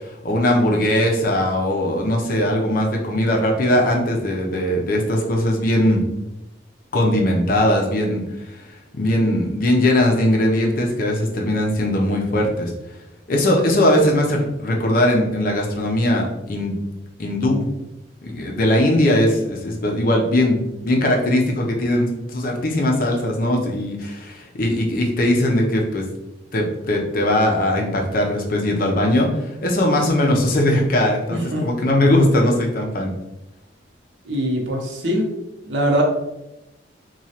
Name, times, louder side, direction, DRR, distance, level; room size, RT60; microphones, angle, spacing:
voice 1, 0.0-6.0 6.9-8.2 8.9-12.7 13.3-16.8 17.2-17.7 18.2-26.0 26.5-33.1, left 1 dB, 50° left, 0 dB, 0.5 m, -20 dB
voice 2, 31.3-31.7 34.2-35.3 35.7-36.0, equal, 80° right, 0 dB, 0.7 m, -22 dB
3.0 x 2.3 x 2.8 m, 0.93 s
head